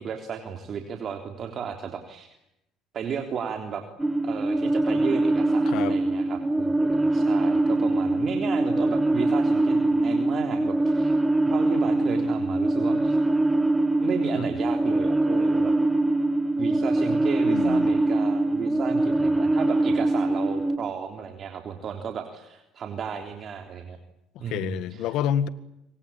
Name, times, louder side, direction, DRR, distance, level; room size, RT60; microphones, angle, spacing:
voice 1, 0.0-2.3 2.9-3.8 4.2-11.2 11.5-13.4 14.0-15.7 16.6-24.0 24.4-25.0, right 7 dB, 50° right, 3.4 m, -34 dB
sound 1, 4.0-20.8, right 2 dB, 10° right, 1.7 m, -23 dB
voice 2, 17.5-17.9 24.4-25.5, left 10 dB, 70° left, 1.9 m, -28 dB
27.0 x 24.5 x 8.9 m
supercardioid pair, 85°, 0 cm